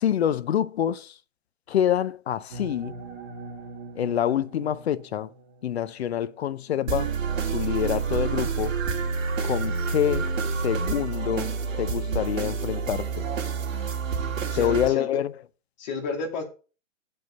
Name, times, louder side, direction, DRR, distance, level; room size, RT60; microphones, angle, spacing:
voice 1, 0.0-1.1 1.7-2.9 4.0-5.3 5.6-7.1 7.5-8.8 9.4-10.3 10.6-11.5 11.8-13.3 14.6-15.3, left 10 dB, 55° left, 0.6 m, -26 dB
sound 1, 2.5-6.0, right 3 dB, 40° right, 1.9 m, -42 dB
sound 2, 6.9-14.9, right 5 dB, 75° right, 2.4 m, -28 dB
voice 2, 14.5-15.2 15.8-16.4, left 4 dB, 35° left, 2.3 m, -32 dB
7.6 x 5.4 x 6.7 m
hypercardioid pair, 170°, 40 cm